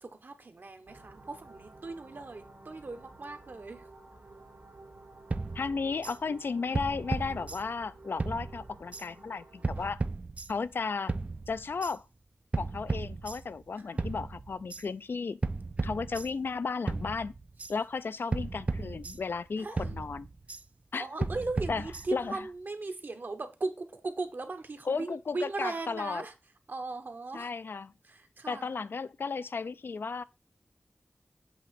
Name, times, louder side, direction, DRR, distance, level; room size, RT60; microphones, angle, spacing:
voice 1, 0.0-3.9 13.8-14.0 19.6-19.9 21.0-26.3 26.7-27.5 28.0-28.7, right 3 dB, 60° right, 1.1 m, -38 dB
sound 1, 0.9-9.9, right 2 dB, 80° right, 2.0 m, -53 dB
sound 2, 5.3-6.2 6.7-7.9 8.2-9.1 9.6-10.7 11.1-12.0 12.5-13.7 14.0-14.8 15.4-16.6 16.9-17.7 18.3-19.5 19.8-20.6 21.2-22.4, right 3 dB, 35° right, 0.4 m, -35 dB
voice 2, 5.5-10.0 10.5-11.1 11.5-12.0 12.6-15.4 15.8-17.3 17.7-20.3 20.9-21.1 21.7-21.8 22.1-22.4 24.9-26.2 27.3-27.9 28.5-30.2, left 4 dB, 70° left, 0.4 m, -34 dB
7.8 x 3.1 x 5.8 m
wide cardioid pair, 90°, 4 cm